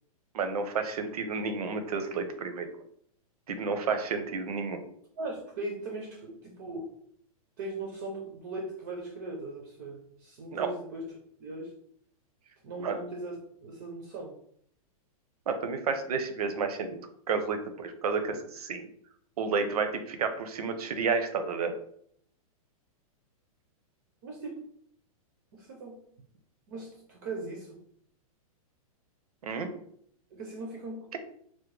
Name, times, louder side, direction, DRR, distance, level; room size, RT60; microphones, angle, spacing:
voice 1, 0.3-2.7 3.5-4.8 10.5-10.7 12.8-13.0 15.5-17.0 17.3-18.9 19.4-21.7 29.4-29.7, right 5 dB, 85° right, 8 dB, 0.6 m, -31 dB
voice 2, 5.2-6.9 7.6-11.0 11.4-11.7 12.6-14.4 24.2-24.6 25.5-26.0 26.7-27.8 30.3-31.2, right 2 dB, 30° right, 1 dB, 0.4 m, -39 dB
3.5 x 2.1 x 3.2 m, 0.65 s
supercardioid pair, 170°, 19 cm